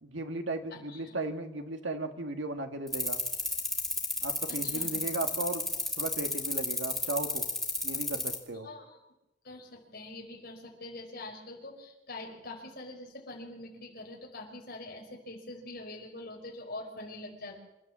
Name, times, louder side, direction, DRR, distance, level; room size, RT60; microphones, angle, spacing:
voice 1, 0.0-3.2 4.2-5.6 6.0-7.5 7.8-8.7, right 2 dB, 85° right, 6 dB, 1.9 m, -36 dB
voice 2, 0.7-1.2 4.5-4.9 8.6-9.0 9.4-17.6, left 2 dB, 55° left, 0 dB, 5.1 m, -44 dB
sound 1, 2.9-8.4, left 1 dB, ahead, 2.3 m, -31 dB
27.5 x 13.0 x 7.5 m, 0.96 s
head